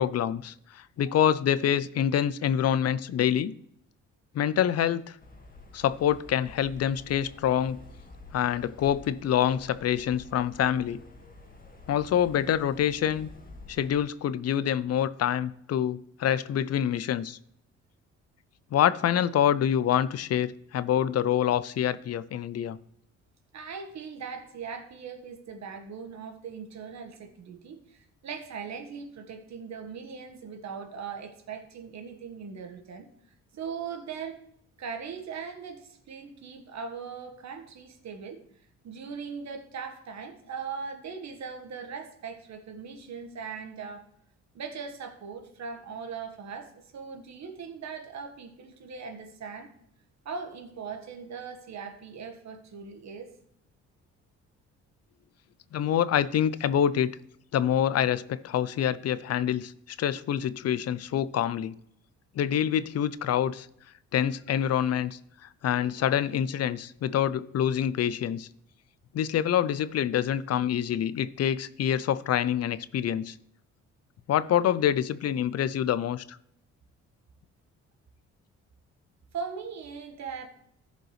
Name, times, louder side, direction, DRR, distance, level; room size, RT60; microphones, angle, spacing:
voice 1, 0.0-3.5 4.3-5.2 5.7-7.8 8.3-11.0 11.9-13.3 13.7-17.4 18.7-22.8 55.7-57.1 57.5-61.7 62.4-63.7 64.1-65.2 65.6-68.5 69.1-73.3 74.3-76.2, left 10 dB, 55° left, 16 dB, 0.5 m, -26 dB
voice 2, 1.0-1.3 23.5-33.1 33.5-34.4 34.8-38.4 38.8-44.0 44.5-49.7 50.2-53.3 79.3-80.5, right 6 dB, 65° right, 5 dB, 1.5 m, -40 dB
sound 1, 5.2-14.0, left 2 dB, 30° left, 1.8 m, -49 dB
14.5 x 5.3 x 3.2 m, 0.73 s
cardioid pair, 90°, 30 cm